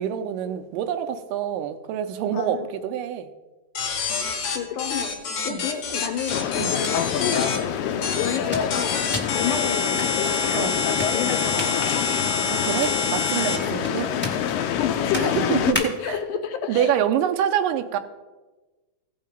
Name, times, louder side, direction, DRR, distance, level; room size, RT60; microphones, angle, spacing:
voice 1, 0.0-3.3 5.5-5.6 6.6-6.8 10.5-10.9 12.5-14.2 15.2-16.2 16.7-18.0, right 10 dB, 85° right, 7 dB, 2.2 m, -26 dB
voice 2, 2.3-2.7 4.5-6.6 6.9-12.3 13.6-13.9 14.6-17.0, left 8 dB, 75° left, 6 dB, 2.3 m, -30 dB
sound 1, 3.8-7.6 8.0-8.4 8.7-13.6, left 5 dB, 60° left, 2.3 m, -27 dB
sound 2, 6.3-15.7, left 9 dB, 90° left, 2.3 m, -27 dB
sound 3, 6.6-16.2, equal, 10° left, 0.5 m, -37 dB
16.5 x 5.6 x 5.2 m, 1.2 s
omnidirectional pair, 3.9 m